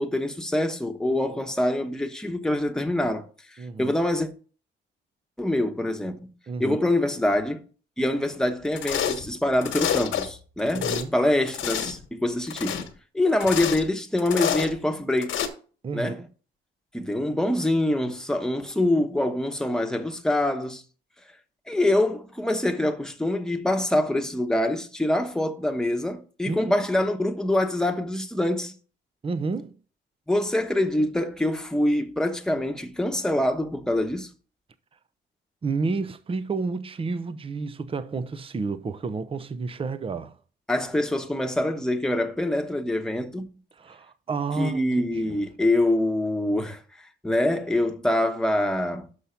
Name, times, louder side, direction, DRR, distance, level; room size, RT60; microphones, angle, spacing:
voice 1, 0.0-3.3 3.8-4.3 5.4-6.2 6.6-7.6 8.0-12.9 13.1-15.4 15.9-16.2 16.9-20.8 21.7-28.7 30.3-34.3 40.7-43.5 44.6-46.8 47.2-49.1, left 1 dB, 5° left, 1.1 m, -25 dB
voice 2, 1.1-1.4 3.6-4.0 6.5-6.8 10.7-11.1 15.8-16.3 26.5-26.8 29.2-29.8 35.6-40.4 43.8-45.4, right 4 dB, 30° right, 0.7 m, -31 dB
sound 1, 8.8-9.3 9.6-10.3 10.6-11.0 11.5-12.0 12.5-12.9 13.4-13.9 14.2-14.7 15.2-15.5, left 8 dB, 75° left, 1.3 m, -28 dB
6.5 x 5.6 x 5.8 m
cardioid pair, 90°, 20 cm